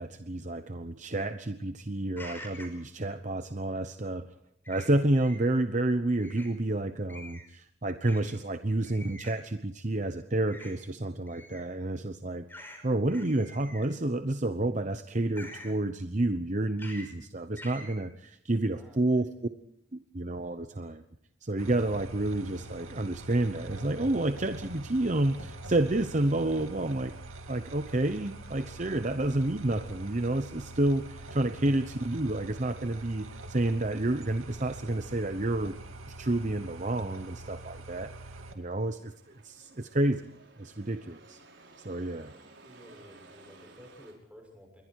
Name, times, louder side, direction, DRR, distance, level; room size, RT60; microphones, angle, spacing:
voice 1, 0.0-4.3 4.7-19.3 19.9-21.0 21.4-27.1 27.5-35.7 36.1-38.1 38.5-40.2 40.6-41.4 41.8-42.3, right 2 dB, 35° right, 9 dB, 0.9 m, -30 dB
sound 1, 2.2-2.8 4.6-5.4 6.2-6.5 7.1-7.5 8.0-8.3 8.8-9.4 10.5-10.7 11.3-11.7 12.5-12.8 13.1-14.0 15.4-15.8 16.8-17.1 17.6-17.9, left 1 dB, 10° left, 5.3 m, -46 dB
voice 2, 18.5-19.3 42.6-44.8, equal, 5° right, 2 dB, 6.7 m, -53 dB
sound 2, 21.6-38.5, right 2 dB, 85° right, 2.5 m, -44 dB
sound 3, 30.0-44.1, right 3 dB, 60° right, 5.8 m, -59 dB
28.0 x 22.5 x 4.7 m, 0.70 s
head